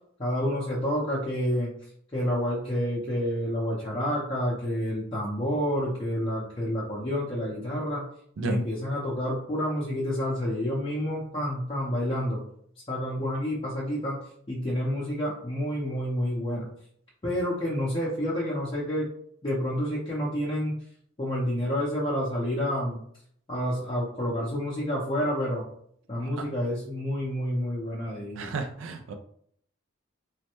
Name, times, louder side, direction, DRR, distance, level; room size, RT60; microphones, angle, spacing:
voice 1, 0.2-1.7 2.1-8.0 8.4-12.4 12.9-14.2 14.5-16.7 17.2-19.1 19.4-20.7 21.2-23.0 23.5-25.6 26.1-28.5, equal, 25° left, -7 dB, 0.6 m, -29 dB
voice 2, 26.2-26.5 28.4-29.1, right 3 dB, 75° right, 6 dB, 0.4 m, -32 dB
3.1 x 2.1 x 2.9 m, 0.65 s
head